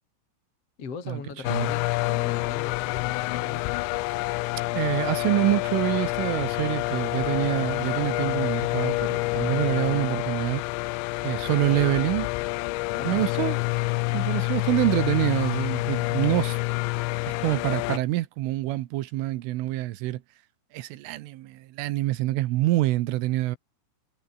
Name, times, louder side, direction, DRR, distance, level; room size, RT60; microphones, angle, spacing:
voice 1, 0.8-3.7 12.8-13.5, left 5 dB, 35° left, 3.6 m, -39 dB
sound 1, 1.4-18.0, left 21 dB, 85° left, 2.6 m, -28 dB
voice 2, 4.7-10.6 11.2-12.3 13.0-13.6 14.1-16.6 17.2-20.2 20.7-23.6, right 16 dB, 75° right, 3.5 m, -26 dB
omnidirectional pair, 6.0 m